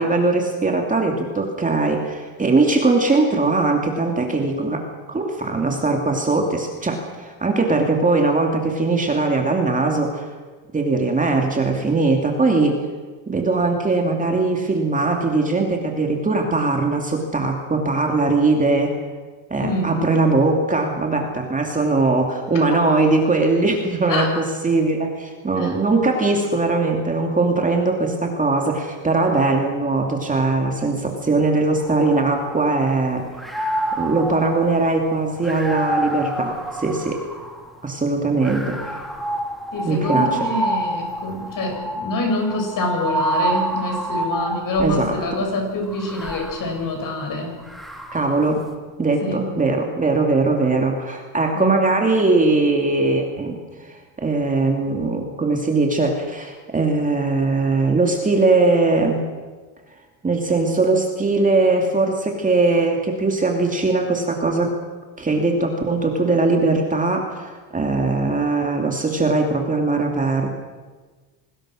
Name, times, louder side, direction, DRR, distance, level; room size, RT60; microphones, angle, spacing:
voice 1, 0.0-10.3 10.7-12.8 13.3-19.0 19.5-33.3 34.0-37.2 37.8-39.0 39.8-40.4 44.8-45.2 48.1-48.6 49.0-59.2 60.2-64.7 65.2-70.5, right 3 dB, 15° right, 2 dB, 2.5 m, -20 dB
voice 2, 19.6-20.0 24.1-24.3 25.6-25.7 39.7-47.5 49.2-49.5 51.5-51.8, left 2 dB, 40° left, 2 dB, 7.6 m, -26 dB
sound 1, 31.8-33.0 33.3-37.7 38.4-45.1 45.9-48.5, right 1 dB, ahead, 3.2 m, -27 dB
27.0 x 20.0 x 6.4 m, 1.4 s
cardioid pair, 135°, 48 cm